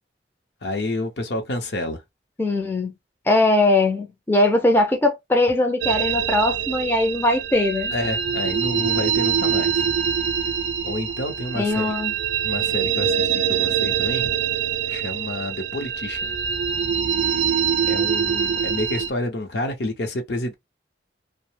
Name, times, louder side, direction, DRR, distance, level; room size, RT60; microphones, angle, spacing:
voice 1, 0.6-2.0 7.9-9.9 10.8-11.8 12.4-14.3 14.9-16.3 17.8-20.5, left 1 dB, 65° left, 0.7 m, -29 dB
voice 2, 2.4-2.9 3.3-7.9 11.6-12.1, left 2 dB, 10° left, 0.4 m, -20 dB
sound 1, 5.8-19.1, right 8 dB, 75° right, 0.4 m, -24 dB
2.7 x 2.0 x 3.1 m
head